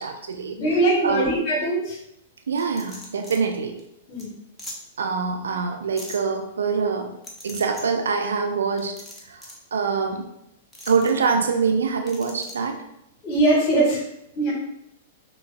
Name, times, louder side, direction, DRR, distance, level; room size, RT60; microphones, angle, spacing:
voice 1, 0.0-0.6 1.0-1.3 2.5-3.8 5.0-7.1 7.4-9.0 9.3-9.4 9.7-10.3 10.9-12.8, right 5 dB, 70° right, 4 dB, 0.4 m, -24 dB
voice 2, 0.6-2.0 4.1-4.3 13.2-14.1 14.4-14.5, right 2 dB, 45° left, -1 dB, 1.3 m, -21 dB
sound 1, 2.6-3.4 3.8-3.9 4.2-4.3 4.6-4.8 6.0-6.2 7.2-7.8 8.8-9.6 10.7-11.1 12.1-12.5, left 1 dB, 10° left, 0.8 m, -40 dB
6.2 x 2.2 x 2.2 m, 0.80 s
figure-of-eight pair, 100°, 0 cm